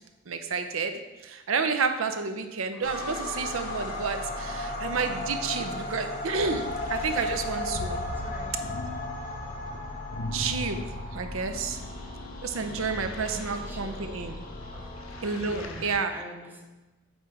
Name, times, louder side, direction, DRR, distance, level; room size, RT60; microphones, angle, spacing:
voice 1, 0.3-8.0 10.3-10.8 11.1-11.8 12.4-14.4 15.2-16.1, right 5 dB, 75° right, 7 dB, 0.6 m, -30 dB
sound 1, 2.8-15.4, left 1 dB, 45° left, 1.1 m, -36 dB
sound 2, 6.4-15.9, left 1 dB, 75° left, 0.6 m, -40 dB
voice 2, 8.2-8.7 11.9-12.0 12.8-13.0 13.3-14.1 14.7-14.9 15.4-16.7, right 1 dB, 10° right, 0 dB, 0.9 m, -46 dB
8.1 x 3.2 x 4.8 m, 1.1 s
head